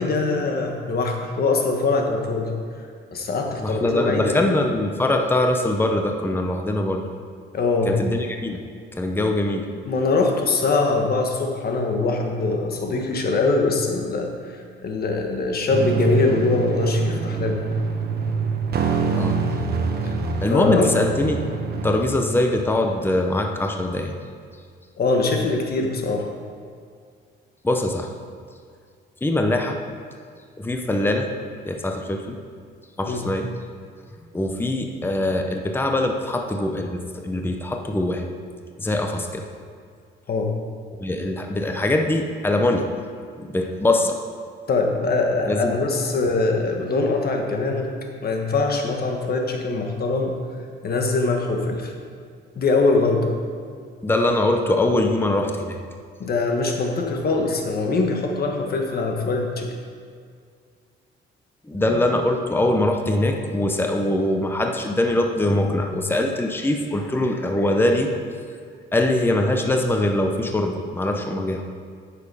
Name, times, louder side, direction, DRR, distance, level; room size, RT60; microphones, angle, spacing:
voice 1, 0.0-2.5 3.1-4.6 7.5-8.0 9.8-17.6 20.5-20.9 25.0-26.3 33.1-33.3 40.3-40.5 44.7-47.9 48.2-50.3 50.8-51.9 52.5-53.3 56.2-59.7, left 3 dB, 50° left, 2 dB, 1.5 m, -22 dB
voice 2, 3.6-7.0 7.9-8.6 8.9-9.7 19.1-19.4 20.4-21.4 21.8-24.1 27.6-28.1 29.2-29.8 30.6-31.3 31.6-32.4 33.0-33.5 34.3-38.2 38.8-39.4 41.0-42.9 43.4-44.2 45.5-45.7 54.0-55.8 61.7-68.1 68.9-71.6, left 1 dB, 10° left, 3 dB, 0.8 m, -22 dB
sound 1, 15.7-22.0, right 4 dB, 50° right, 1.1 m, -25 dB
9.3 x 6.9 x 4.9 m, 2.1 s
cardioid pair, 90°, 20 cm